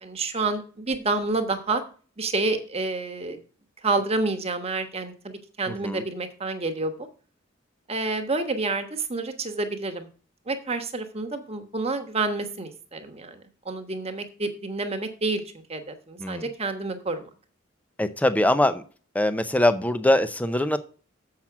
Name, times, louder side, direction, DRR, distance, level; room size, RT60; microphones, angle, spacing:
voice 1, 0.0-1.8 2.2-3.4 3.8-7.1 7.9-10.1 10.5-15.4 15.7-17.3, right 3 dB, 30° right, 1.2 m, -29 dB
voice 2, 5.7-6.0 16.2-16.5 18.0-18.8 19.1-20.8, left 1 dB, 10° left, 0.6 m, -22 dB
7.4 x 5.8 x 6.0 m
head